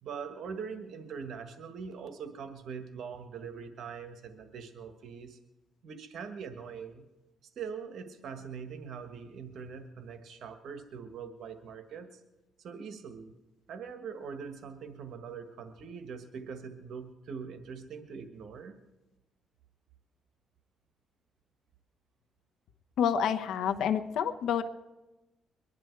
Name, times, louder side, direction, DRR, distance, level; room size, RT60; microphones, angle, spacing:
voice 1, 0.0-5.4 5.8-7.0 7.5-12.2 12.6-13.3 13.7-18.7, right 6 dB, 70° right, 7 dB, 1.6 m, -42 dB
voice 2, 23.0-24.6, left 8 dB, 75° left, 6 dB, 1.0 m, -28 dB
23.5 x 10.5 x 4.7 m, 1.0 s
cardioid pair, 90°, 0 cm